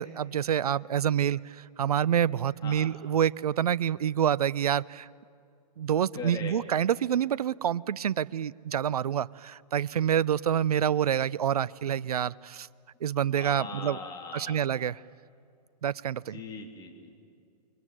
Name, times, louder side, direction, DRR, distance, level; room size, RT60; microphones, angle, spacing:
voice 1, 0.0-5.1 5.8-12.7 13.0-14.0 14.3-15.0 15.8-16.4, right 9 dB, 65° right, 21 dB, 0.6 m, -27 dB
voice 2, 6.2-6.6 13.3-14.6 16.1-17.1, left 5 dB, 20° left, 2 dB, 3.1 m, -40 dB
28.0 x 22.0 x 9.4 m, 2.3 s
figure-of-eight pair, 115°, 21 cm